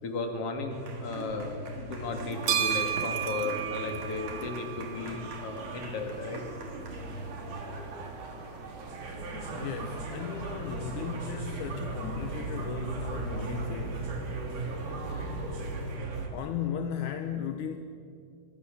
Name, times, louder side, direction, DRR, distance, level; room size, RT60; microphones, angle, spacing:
voice 1, 0.0-6.4 7.8-7.9, left 3 dB, 40° left, 4 dB, 3.0 m, -35 dB
sound 1, 0.7-16.3, right 2 dB, 50° right, 4.2 m, -38 dB
sound 2, 2.1-16.0, right 9 dB, 65° right, 3.1 m, -38 dB
voice 2, 9.5-14.1 16.0-17.8, left 8 dB, 70° left, 6 dB, 2.0 m, -36 dB
25.5 x 23.0 x 7.2 m, 2.4 s
omnidirectional pair, 4.8 m